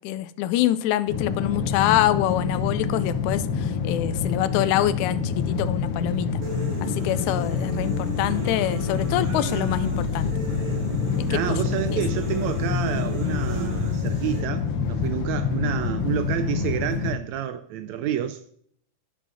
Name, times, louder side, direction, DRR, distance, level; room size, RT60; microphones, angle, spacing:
voice 1, 0.0-6.4 6.8-10.3 11.2-11.4 11.9-12.0, left 13 dB, 80° left, 1.9 m, -25 dB
sound 1, 1.1-17.1, left 5 dB, 60° left, 1.5 m, -27 dB
sound 2, 6.4-14.4, right 3 dB, 55° right, 1.0 m, -36 dB
voice 2, 11.3-18.4, right 10 dB, 80° right, 1.6 m, -29 dB
10.0 x 5.4 x 6.2 m
omnidirectional pair, 3.6 m